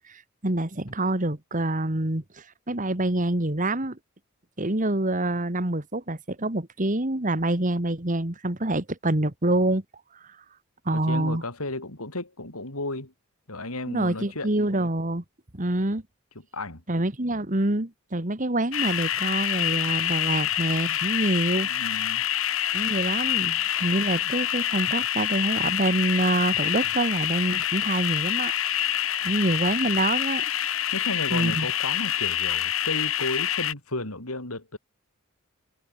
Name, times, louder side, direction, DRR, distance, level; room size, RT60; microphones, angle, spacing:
voice 1, 0.0-4.0 4.6-9.8 10.9-11.4 13.9-15.2 15.5-16.0 16.9-21.7 22.7-28.5 29.2-30.4 31.3-31.7, right 1 dB, 35° right, 2.1 m, -26 dB
voice 2, 10.9-13.1 13.5-14.5 16.5-16.8 21.6-22.3 30.9-34.8, left 2 dB, 80° left, 5.5 m, -33 dB
sound 1, 18.7-33.7, left 11 dB, 65° left, 2.4 m, -26 dB
head